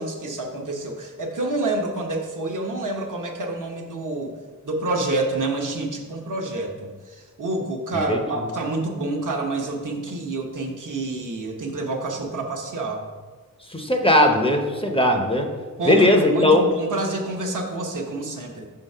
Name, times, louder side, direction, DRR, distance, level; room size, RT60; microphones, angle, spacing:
voice 1, 0.0-4.4 4.6-13.0 15.8-18.7, right 2 dB, 60° right, 1 dB, 1.0 m, -28 dB
voice 2, 13.7-15.5 15.8-16.7, left 1 dB, 15° left, 2 dB, 0.7 m, -18 dB
5.6 x 3.8 x 5.5 m, 1.5 s
wide cardioid pair, 70°, 34 cm